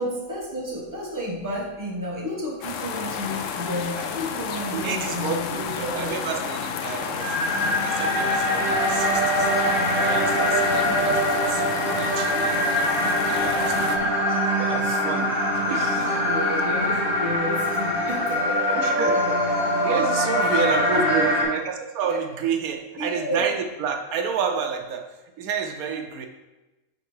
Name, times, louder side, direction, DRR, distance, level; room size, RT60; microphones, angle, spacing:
voice 1, 0.0-6.4 13.9-14.0 15.7-19.0 20.4-21.4 22.1-22.2 22.9-23.4, equal, 15° right, -3 dB, 1.1 m, -32 dB
sound 1, 2.6-14.0, left 6 dB, 70° left, 0.9 m, -31 dB
voice 2, 4.7-15.3 15.7-16.1 16.5-16.6 18.7-19.2 19.8-25.1 25.4-26.3, right 6 dB, 80° right, 5 dB, 1.1 m, -30 dB
sound 2, 7.2-21.4, equal, 50° right, 2.1 m, -23 dB
5.3 x 4.4 x 4.8 m, 1.1 s
omnidirectional pair, 1.5 m